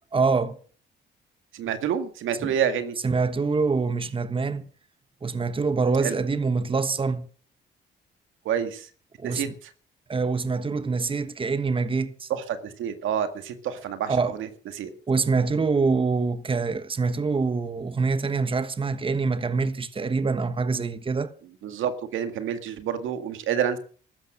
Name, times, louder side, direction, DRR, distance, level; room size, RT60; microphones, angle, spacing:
voice 1, 0.1-0.6 2.4-2.5 3.0-4.6 5.2-7.3 9.2-9.4 10.1-12.3 14.1-14.4 15.1-21.3, right 4 dB, 25° right, 1.3 m, -25 dB
voice 2, 1.5-3.0 6.0-6.2 8.5-8.9 9.2-9.5 12.3-14.5 14.7-14.9 21.6-23.8, right 8 dB, 80° right, 2.0 m, -28 dB
15.0 x 12.5 x 6.5 m
cardioid pair, 90°, 20 cm